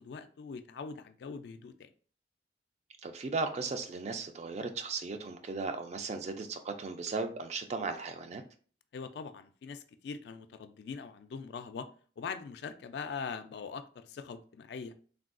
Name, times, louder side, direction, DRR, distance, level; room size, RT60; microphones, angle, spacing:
voice 1, 0.0-1.9 8.9-11.9 12.2-14.9, left 5 dB, 65° left, 0.3 m, -42 dB
voice 2, 3.0-8.4, right 4 dB, 40° right, 0.3 m, -36 dB
3.4 x 2.2 x 2.4 m
head